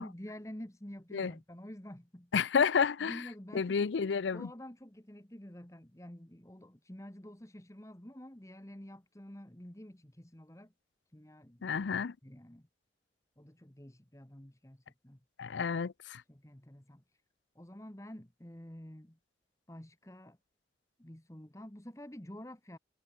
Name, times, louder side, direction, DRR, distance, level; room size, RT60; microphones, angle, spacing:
voice 1, 0.0-2.3 3.0-10.7 11.1-11.6 12.2-12.7 13.4-15.2 16.3-17.2 17.5-19.2 19.7-20.4 21.0-22.8, equal, 15° left, 1.4 m, -49 dB
voice 2, 2.3-3.2 3.5-4.5 11.6-12.1 15.4-16.2, left 6 dB, 85° left, 0.5 m, -30 dB
head